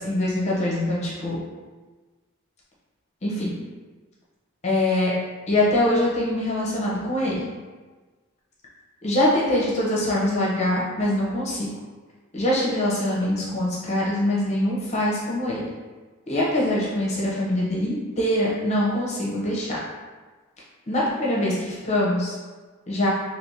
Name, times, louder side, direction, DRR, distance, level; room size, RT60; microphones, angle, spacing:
voice 1, 0.0-1.4 3.2-3.5 4.6-5.1 5.5-7.4 9.0-11.7 12.3-15.7 16.3-19.8 20.9-22.4 22.9-23.1, left 1 dB, 35° left, -5 dB, 0.8 m, -23 dB
3.4 x 2.9 x 2.8 m, 1.3 s
head